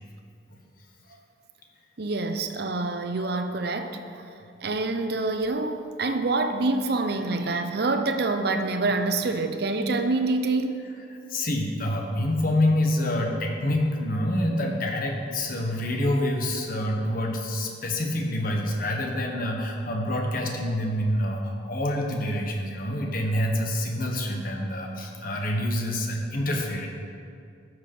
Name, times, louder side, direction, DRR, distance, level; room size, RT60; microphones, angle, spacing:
voice 1, 2.0-4.2 4.6-10.9, right 3 dB, 55° right, 7 dB, 0.7 m, -26 dB
voice 2, 11.1-26.9, left 1 dB, 50° left, 1 dB, 1.4 m, -27 dB
13.0 x 6.4 x 5.5 m, 2.4 s
head